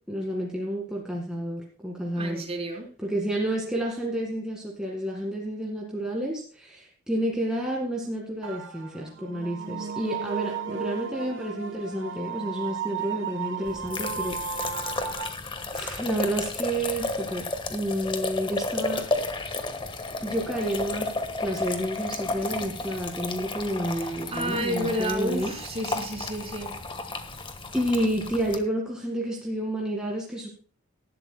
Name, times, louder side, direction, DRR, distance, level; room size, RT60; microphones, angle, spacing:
voice 1, 0.1-2.4 3.0-14.8 15.7-19.1 20.2-21.1 21.4-25.5 27.7-30.5, right 1 dB, 5° right, -2 dB, 2.0 m, -30 dB
voice 2, 2.1-2.9 23.9-26.7, right 1 dB, 30° right, 2 dB, 3.8 m, -31 dB
sound 1, 8.4-15.3, right 7 dB, 60° right, 1.2 m, -34 dB
sound 2, 13.6-28.6, left 3 dB, 25° left, 1.4 m, -33 dB
19.5 x 11.5 x 2.2 m, 0.40 s
head